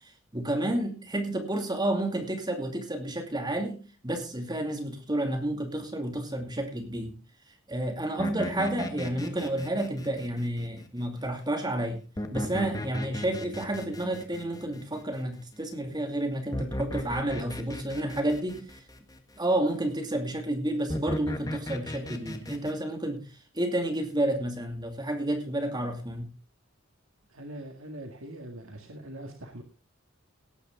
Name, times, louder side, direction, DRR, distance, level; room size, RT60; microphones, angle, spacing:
voice 1, 0.3-7.1 7.7-12.0 12.3-18.6 19.4-23.2 23.5-26.3, right 1 dB, 20° right, 5 dB, 2.5 m, -30 dB
sound 1, 8.2-11.0 12.2-15.6 16.5-19.2 20.9-22.7, left 1 dB, 20° left, 1.6 m, -36 dB
voice 2, 27.3-29.6, right 1 dB, 85° right, 4 dB, 1.9 m, -42 dB
17.5 x 9.2 x 3.8 m, 0.32 s
head